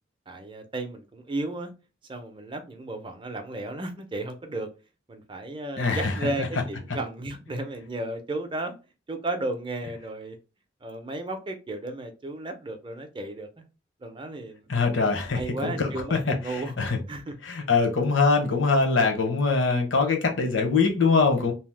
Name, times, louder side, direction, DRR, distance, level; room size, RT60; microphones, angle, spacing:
voice 1, 0.3-1.7 2.1-4.7 5.1-8.7 9.1-10.4 10.8-13.6 14.0-14.7 15.3-16.7 17.1-17.4, right 2 dB, 25° right, 0.5 m, -34 dB
voice 2, 5.8-6.1 14.7-17.0 17.4-21.5, left 4 dB, 75° left, 0.8 m, -23 dB
2.8 x 2.0 x 3.2 m
head